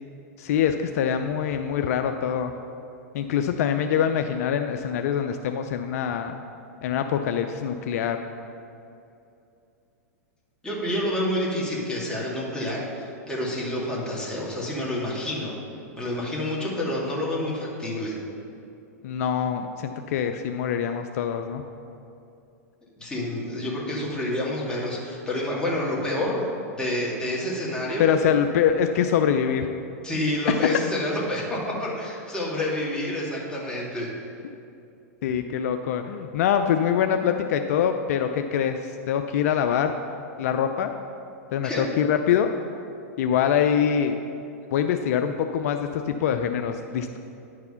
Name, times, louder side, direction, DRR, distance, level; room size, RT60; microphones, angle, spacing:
voice 1, 0.4-2.5 3.1-6.4 6.8-8.2 19.0-21.6 28.0-29.7 30.5-30.6 35.2-38.8 39.1-40.0 40.4-40.9 41.5-42.5 43.2-44.1 44.7-47.2, left 8 dB, 65° left, 7 dB, 0.4 m, -24 dB
voice 2, 10.6-15.5 16.0-18.2 23.0-26.5 26.7-28.0 30.0-34.3 41.6-41.9, left 1 dB, 10° left, -5 dB, 2.2 m, -28 dB
10.5 x 4.8 x 5.6 m, 2.7 s
hypercardioid pair, 115°, 9 cm